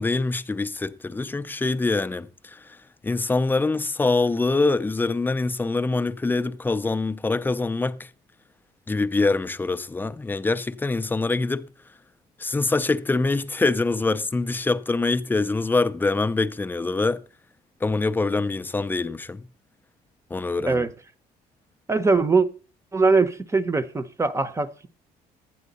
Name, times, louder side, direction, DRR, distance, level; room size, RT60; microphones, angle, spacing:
voice 1, 0.0-2.8 3.0-8.1 8.9-11.7 12.4-17.2 17.8-19.4 20.3-20.9, left 3 dB, 10° left, 0.4 m, -24 dB
voice 2, 21.9-22.5 22.9-24.9, right 4 dB, 15° right, 0.7 m, -21 dB
12.0 x 9.3 x 4.0 m
cardioid pair, 110°, 17 cm